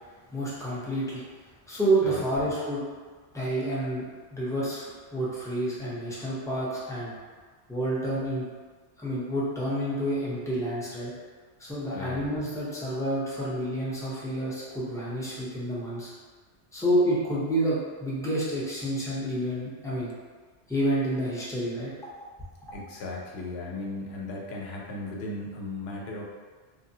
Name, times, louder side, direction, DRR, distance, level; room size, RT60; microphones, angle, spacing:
voice 1, 0.3-1.2 1.7-2.8 3.3-7.1 7.7-8.4 9.0-11.1 11.6-16.1 16.7-20.1 20.7-21.9, right 1 dB, 5° left, -8 dB, 0.4 m, -29 dB
voice 2, 22.7-26.2, left 2 dB, 65° left, -2 dB, 0.8 m, -36 dB
3.3 x 2.1 x 2.6 m, 1.5 s
omnidirectional pair, 1.2 m